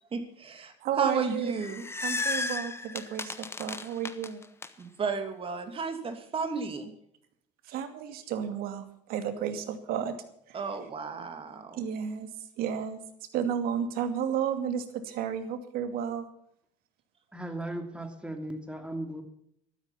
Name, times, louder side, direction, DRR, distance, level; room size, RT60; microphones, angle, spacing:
voice 1, 0.1-1.8 4.8-6.9 10.5-11.8, right 5 dB, 35° right, 7 dB, 2.8 m, -33 dB
voice 2, 0.8-1.5 2.0-4.4 7.7-10.1 10.5-10.6 11.8-12.3 12.6-13.0 13.3-16.3, right 8 dB, 65° right, 9 dB, 2.5 m, -32 dB
sound 1, 1.4-4.7, left 3 dB, 15° left, 1.3 m, -34 dB
voice 3, 17.3-19.2, right 1 dB, 5° right, 6 dB, 2.9 m, -37 dB
13.5 x 13.0 x 5.8 m, 0.71 s
supercardioid pair, 95°, 17 cm